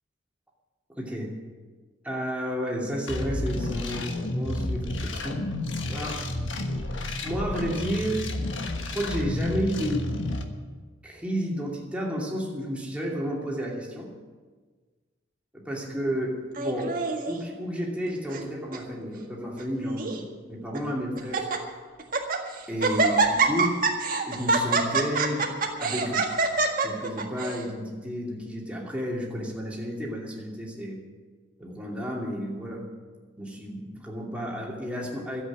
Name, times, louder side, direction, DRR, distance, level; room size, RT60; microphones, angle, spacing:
voice 1, 1.0-1.4 2.0-5.4 5.8-6.3 7.2-8.3 8.8-10.1 11.0-14.1 15.5-17.0 17.3-21.6 22.7-23.8 24.3-26.3 26.8-31.0 31.6-32.8 33.4-35.4, equal, 5° right, -3 dB, 2.6 m, -31 dB
sound 1, 3.1-10.4, left 1 dB, 80° left, 1.4 m, -31 dB
Laughter, 16.6-17.4 18.1-18.5 18.7-18.8 19.6-20.2 20.7-20.8 21.2-21.6 22.0-22.4 22.8-27.6, right 4 dB, 45° right, 1.8 m, -25 dB
13.0 x 8.3 x 9.9 m, 1.4 s
head